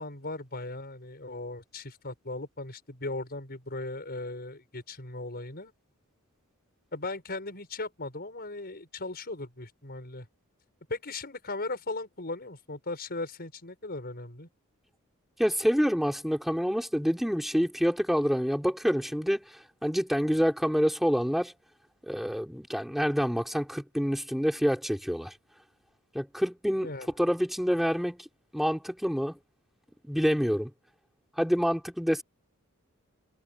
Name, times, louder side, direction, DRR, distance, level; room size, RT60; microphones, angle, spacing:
voice 1, 0.0-5.7 6.9-10.3 10.9-14.5 26.8-27.1, left 2 dB, 45° left, 5.8 m, -37 dB
voice 2, 15.4-21.5 22.1-25.3 26.1-26.9 27.2-28.3 28.5-29.4 30.0-30.7 31.4-32.2, equal, ahead, 3.4 m, -27 dB
head